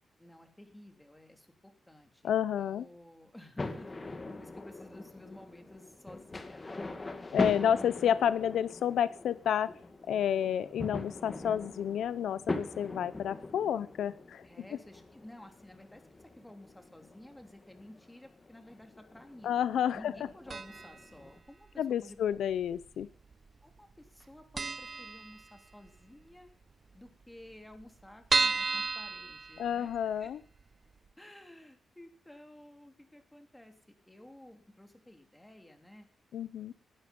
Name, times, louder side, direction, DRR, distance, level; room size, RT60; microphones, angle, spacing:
voice 1, 0.2-6.8 7.5-7.8 14.4-19.7 19.9-22.2 22.4-22.6 23.6-26.5 26.9-30.3 31.2-36.1, left 1 dB, 10° left, 5 dB, 3.2 m, -53 dB
voice 2, 2.2-2.9 7.3-9.7 10.1-14.4 19.4-20.1 21.8-23.1 29.6-30.4 36.3-36.7, left 9 dB, 85° left, 16 dB, 0.7 m, -30 dB
sound 1, 3.6-21.4, left 2 dB, 25° left, 2.4 m, -42 dB
sound 2, 20.5-21.0 21.3-21.4 22.3-23.0 23.3-23.5 23.8-23.9 24.2-24.3 24.6-25.9 26.3-26.4 26.6-26.7 26.9-27.0 27.5-30.1 30.6-30.7 31.1-31.2, right 4 dB, 35° right, 0.7 m, -32 dB
19.5 x 12.0 x 5.4 m, 0.43 s
cardioid pair, 100°, 0 cm